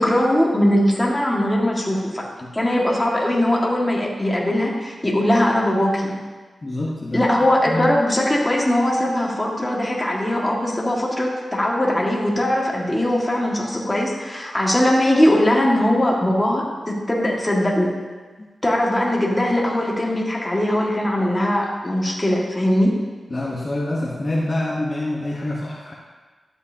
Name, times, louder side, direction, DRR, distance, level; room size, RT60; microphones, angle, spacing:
voice 1, 0.0-2.2 2.5-6.1 7.1-17.9 18.6-22.9, left 1 dB, 15° left, -3 dB, 2.0 m, -20 dB
voice 2, 6.6-7.9 23.3-25.9, left 1 dB, 35° left, -5 dB, 1.2 m, -26 dB
12.0 x 7.8 x 2.9 m, 1.3 s
wide cardioid pair, 75°, 0 cm